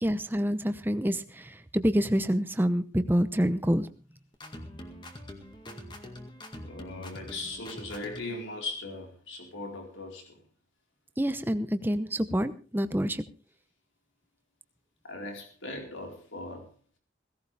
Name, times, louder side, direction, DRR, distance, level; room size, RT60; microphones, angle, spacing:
voice 1, 0.0-3.9 11.2-13.2, equal, 10° right, 11 dB, 0.8 m, -27 dB
sound 1, 4.3-8.4, left 1 dB, 25° left, 2.0 m, -44 dB
voice 2, 6.6-10.4 15.0-16.7, left 2 dB, 85° left, 2 dB, 4.5 m, -39 dB
17.0 x 16.5 x 3.5 m, 0.36 s
head